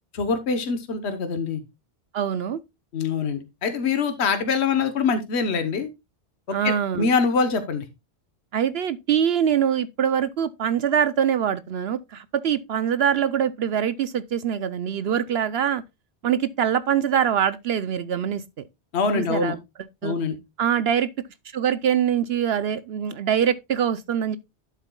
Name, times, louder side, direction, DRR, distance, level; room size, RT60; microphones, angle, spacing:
voice 1, 0.1-1.6 2.9-5.9 6.6-7.8 18.9-19.5 20.0-20.4, left 5 dB, 70° left, 1.3 m, -24 dB
voice 2, 2.1-2.6 6.5-7.1 8.5-15.8 16.2-18.4 19.1-19.6 20.0-20.2 20.6-21.1 21.5-24.4, right 8 dB, 70° right, 0.8 m, -23 dB
11.5 x 7.5 x 2.2 m
omnidirectional pair, 1.2 m